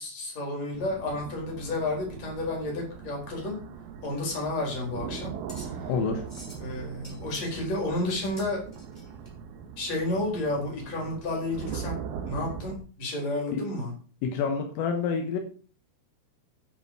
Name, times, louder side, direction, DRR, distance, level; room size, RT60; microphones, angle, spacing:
voice 1, 0.0-3.6 4.0-5.3 5.6-5.9 6.6-8.6 9.8-13.9, left 2 dB, 35° left, 0 dB, 5.1 m, -31 dB
sound 1, 0.7-12.8, right 7 dB, 85° right, 4.1 m, -40 dB
sound 2, 4.6-9.3, equal, 10° left, 5.2 m, -50 dB
voice 2, 5.9-6.3 13.5-13.7 14.2-15.4, left 5 dB, 80° left, 5 dB, 3.9 m, -28 dB
11.0 x 10.0 x 5.0 m, 0.42 s
omnidirectional pair, 6.0 m